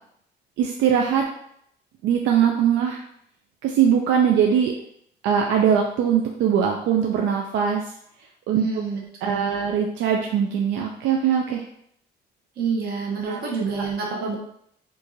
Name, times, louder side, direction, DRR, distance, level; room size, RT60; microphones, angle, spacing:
voice 1, 0.6-1.3 2.0-3.0 3.6-4.7 5.2-7.9 8.5-8.7 9.2-11.6 13.3-13.4, right 8 dB, 85° right, 1 dB, 0.4 m, -21 dB
voice 2, 8.5-9.6 12.6-14.3, right 5 dB, 55° right, -2 dB, 1.0 m, -28 dB
4.5 x 2.5 x 2.7 m, 0.70 s
cardioid pair, 175°, 19 cm